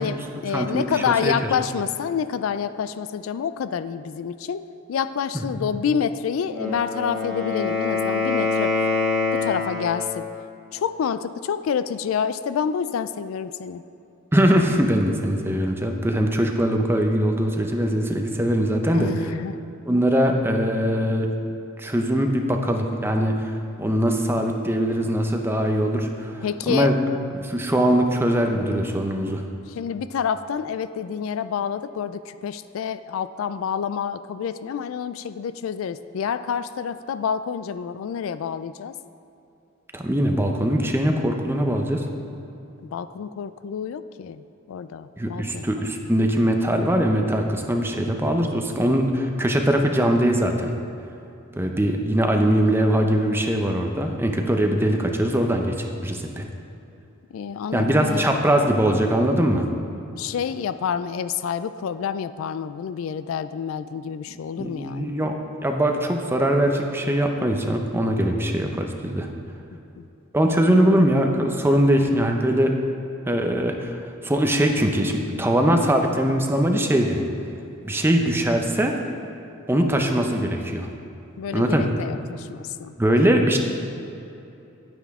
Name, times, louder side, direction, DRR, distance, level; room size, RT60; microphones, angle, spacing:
voice 1, 0.0-8.7 9.3-10.3 10.7-13.8 18.9-19.6 26.4-26.9 27.9-28.0 29.7-39.0 42.8-45.7 57.3-58.3 60.2-65.1 70.0-70.1 70.5-70.8 81.4-82.9, left 7 dB, 75° left, 13 dB, 0.3 m, -28 dB
voice 2, 0.5-0.9 1.2-1.3 5.5-5.6 14.3-19.1 19.9-21.3 21.8-26.9 27.3-29.4 39.9-42.0 45.2-50.7 51.5-56.5 57.7-59.6 64.6-65.4 65.6-69.3 70.3-72.7 73.2-77.2 77.8-78.9 79.7-80.9 81.5-81.9 83.0-83.6, equal, 10° right, 3 dB, 0.6 m, -21 dB
Wind instrument woodwind instrument, 6.4-10.2, left 3 dB, 5° left, 1.8 m, -25 dB
9.8 x 9.0 x 3.6 m, 2.8 s
head